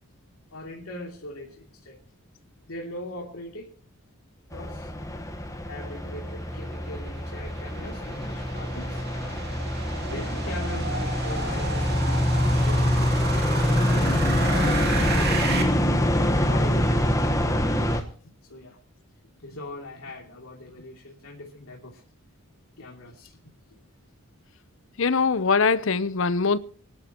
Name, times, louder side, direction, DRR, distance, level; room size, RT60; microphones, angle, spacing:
voice 1, 0.5-2.0 2.7-3.7 4.5-4.9 5.7-9.1 10.1-15.6 16.1-18.0 18.5-18.8 19.4-22.0 22.8-23.4 23.7-23.8, left 1 dB, 80° left, 2.9 m, -40 dB
sound 1, 4.5-18.0, left 1 dB, 15° left, 1.2 m, -25 dB
sound 2, 6.1-15.6, right 4 dB, 45° right, 2.6 m, -34 dB
voice 2, 25.0-26.6, left 4 dB, 60° left, 0.7 m, -22 dB
25.0 x 11.5 x 3.0 m
head